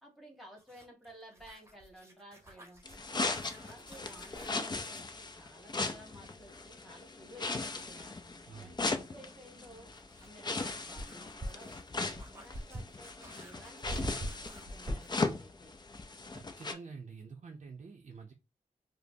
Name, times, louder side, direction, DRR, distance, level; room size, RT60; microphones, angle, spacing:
voice 1, 0.0-2.8 3.2-8.2 8.5-9.9 10.2-15.7, equal, ahead, -2 dB, 1.4 m, -55 dB
sound 1, 0.6-5.1 7.5-7.6 9.5-15.4, equal, 20° right, 0.9 m, -45 dB
sound 2, 2.9-16.7, left 3 dB, 30° left, 0.5 m, -38 dB
voice 2, 8.5-8.8 16.3-18.3, right 5 dB, 50° right, 1 dB, 0.5 m, -48 dB
5.0 x 2.0 x 2.7 m, 0.27 s
cardioid pair, 70°, 15 cm